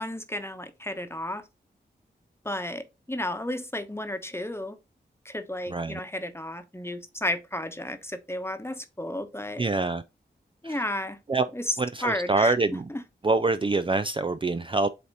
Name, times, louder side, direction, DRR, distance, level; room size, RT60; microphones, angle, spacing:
voice 1, 0.0-1.4 2.4-2.8 3.1-4.8 5.2-9.6 10.6-11.2 12.0-12.5, left 1 dB, 15° left, 1.0 m, -33 dB
voice 2, 5.7-6.0 9.6-10.0 10.6-10.8 11.3-11.5 11.8-12.9 13.2-14.9, right 3 dB, 30° right, 0.4 m, -25 dB
8.1 x 2.9 x 4.1 m
cardioid pair, 40°, 19 cm